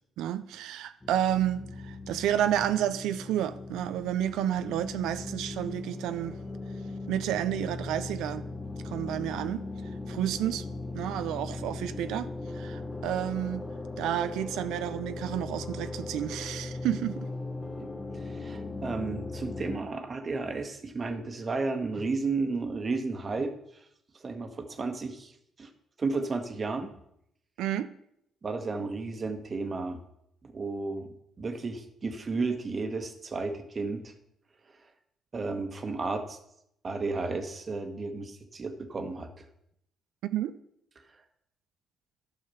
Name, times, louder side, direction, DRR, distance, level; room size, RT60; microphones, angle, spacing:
voice 1, 0.2-6.4 7.1-8.4 8.8-9.6 10.1-10.6 10.9-12.3 12.5-13.7 14.0-17.3 27.6-27.9 40.3-40.5, right 11 dB, 85° right, 0.4 m, -30 dB
sound 1, 1.0-19.8, left 3 dB, 20° left, 1.4 m, -38 dB
voice 2, 17.8-23.5 24.2-25.3 25.6-25.7 26.0-26.9 28.4-30.0 30.4-34.1 35.3-36.4 36.8-39.4, right 3 dB, 40° right, 1.3 m, -33 dB
11.0 x 5.7 x 5.5 m
supercardioid pair, 65°, 0 cm